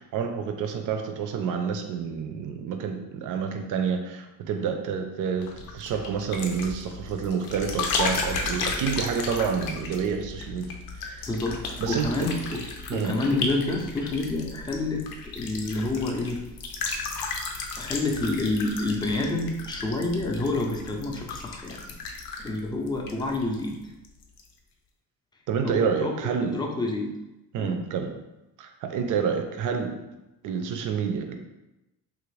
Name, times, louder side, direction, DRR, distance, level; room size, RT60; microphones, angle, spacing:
voice 1, 0.0-10.7 11.0-11.3 11.8-12.3 12.9-13.2 25.5-26.6 27.5-28.1 28.6-30.0 30.4-31.4, right 6 dB, 60° right, 5 dB, 0.5 m, -28 dB
sound 1, 5.4-23.8 24.0-24.5, left 4 dB, 85° left, 0.6 m, -34 dB
voice 2, 11.3-12.6 12.9-15.1 15.3-16.4 17.8-21.8 22.4-23.9 25.6-26.1 26.4-27.1 27.6-27.8, left 2 dB, 15° left, 1 dB, 0.4 m, -28 dB
3.3 x 2.5 x 3.1 m, 0.95 s
cardioid pair, 125°, 35 cm